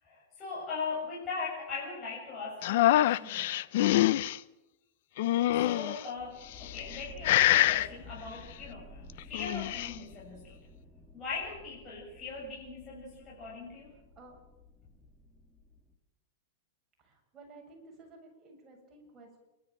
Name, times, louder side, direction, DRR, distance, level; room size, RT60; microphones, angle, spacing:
voice 1, 0.0-3.5 5.6-10.6 11.1-13.9, left 4 dB, 25° left, -5 dB, 7.9 m, -40 dB
sound 1, 2.6-4.4 5.2-6.0 6.7-7.0 7.2-7.9 9.2-9.9, left 14 dB, 60° left, 0.8 m, -25 dB
sound 2, 6.2-15.9, left 2 dB, ahead, 3.1 m, -52 dB
voice 2, 17.0-19.4, right 3 dB, 25° right, 1 dB, 7.7 m, -54 dB
28.0 x 13.0 x 9.0 m, 0.99 s
supercardioid pair, 140°, 0 cm